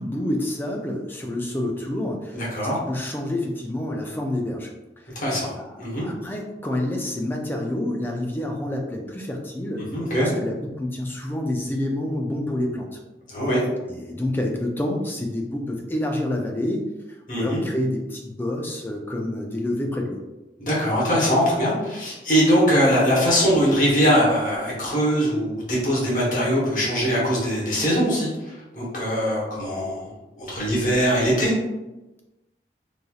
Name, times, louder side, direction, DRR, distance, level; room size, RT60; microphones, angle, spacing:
voice 1, 0.0-5.2 5.5-9.9 10.2-13.0 13.9-20.2, left 1 dB, 10° left, 1 dB, 0.3 m, -28 dB
voice 2, 2.3-2.8 5.1-5.5 5.8-6.1 9.9-10.3 13.3-13.6 17.3-17.6 20.6-30.1 30.4-31.5, equal, 45° left, -6 dB, 1.1 m, -21 dB
3.2 x 2.6 x 2.3 m, 1.0 s
head